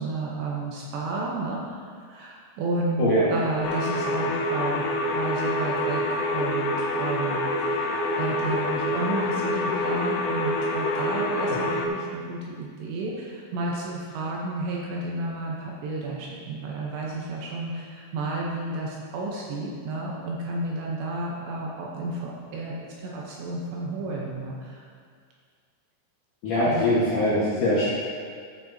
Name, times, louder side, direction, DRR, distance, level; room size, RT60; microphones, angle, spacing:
voice 1, 0.0-6.0 6.3-24.8 26.6-26.9, right 2 dB, 75° right, -3 dB, 2.8 m, -32 dB
sound 1, 3.6-11.9, left 1 dB, 85° left, 3.1 m, -26 dB
voice 2, 26.4-27.9, left 1 dB, 65° left, -11 dB, 2.0 m, -22 dB
12.0 x 7.0 x 2.7 m, 2.1 s
omnidirectional pair, 5.8 m